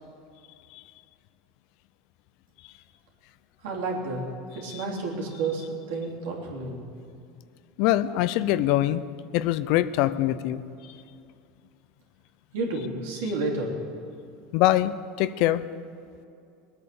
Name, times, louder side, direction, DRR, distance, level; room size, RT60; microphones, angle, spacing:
voice 1, 3.6-4.2 4.5-6.8 12.5-13.7, right 3 dB, 80° right, -1 dB, 3.5 m, -30 dB
voice 2, 7.8-9.0 9.3-10.6 10.9-11.0 14.5-15.6, left 14 dB, 60° left, 15 dB, 0.6 m, -23 dB
20.5 x 8.8 x 7.0 m, 2.5 s
supercardioid pair, 125°, 0 cm